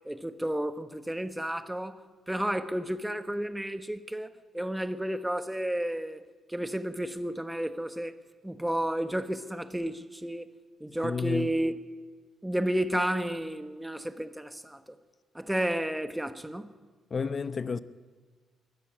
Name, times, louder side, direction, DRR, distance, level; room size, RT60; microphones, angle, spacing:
voice 1, 0.0-6.2 6.5-8.2 8.4-10.5 10.8-11.8 12.4-15.0 15.3-16.7, right 1 dB, 5° right, 1.2 m, -32 dB
voice 2, 11.0-11.5 17.1-17.8, left 5 dB, 40° left, 0.8 m, -31 dB
21.0 x 13.5 x 9.8 m
cardioid pair, 90°, 0 cm